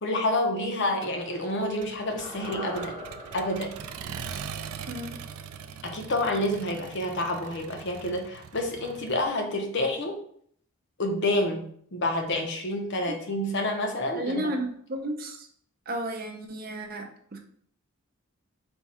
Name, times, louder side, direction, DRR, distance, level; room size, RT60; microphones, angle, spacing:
voice 1, 0.0-3.0 3.3-3.8 5.8-10.2 11.0-11.6 11.9-14.5, left 1 dB, 55° left, 3 dB, 0.8 m, -28 dB
Accelerating revving vroom, 1.0-9.3, right 7 dB, 80° right, 0.4 m, -42 dB
sound 1, 2.2-6.5 6.8-6.9, equal, 75° left, 1.7 m, -42 dB
voice 2, 4.9-5.2 13.1-13.2 14.2-15.5 15.9-17.4, right 1 dB, 45° right, 3 dB, 0.6 m, -33 dB
4.4 x 2.3 x 4.2 m, 0.62 s
head